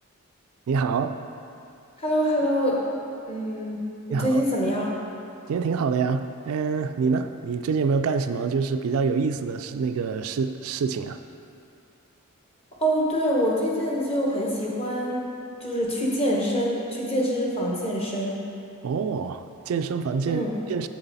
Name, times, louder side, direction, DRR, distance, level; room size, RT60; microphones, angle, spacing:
voice 1, 0.7-1.2 4.1-4.4 5.5-11.2 18.8-20.9, right 5 dB, 75° right, 8 dB, 0.3 m, -26 dB
voice 2, 2.0-2.9 3.3-3.8 4.1-5.0 12.8-15.3 15.6-18.4 20.3-20.5, equal, 25° left, -3 dB, 1.1 m, -25 dB
7.8 x 6.8 x 4.1 m, 2.6 s
head